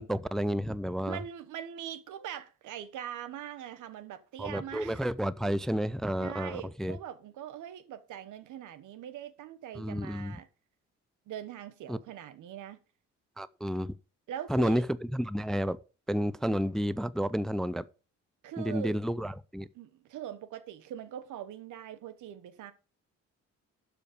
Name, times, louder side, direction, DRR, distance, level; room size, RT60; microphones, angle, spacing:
voice 1, 0.0-1.2 4.4-7.0 9.8-10.4 11.9-12.0 13.4-14.0 14.5-15.8 16.1-17.8 18.6-19.7, equal, ahead, 0.4 m, -31 dB
voice 2, 1.1-5.0 6.2-10.5 11.3-12.8 14.3-14.8 18.4-18.9 19.7-22.7, right 10 dB, 80° right, 1.1 m, -42 dB
12.0 x 5.0 x 5.0 m
cardioid pair, 90°, 30 cm